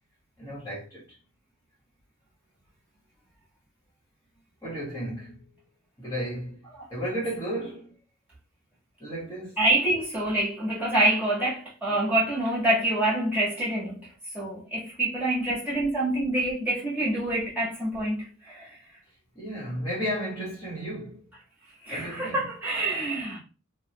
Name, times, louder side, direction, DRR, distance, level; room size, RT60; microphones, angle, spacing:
voice 1, 0.4-1.0 4.6-5.4 6.0-8.0 9.0-9.6 19.3-21.3 21.9-22.5, equal, 15° left, 1.3 m, -34 dB
voice 2, 9.6-14.0 14.3-18.7 21.8-23.4, right 1 dB, 5° right, 1.4 m, -26 dB
3.0 x 2.4 x 2.9 m
head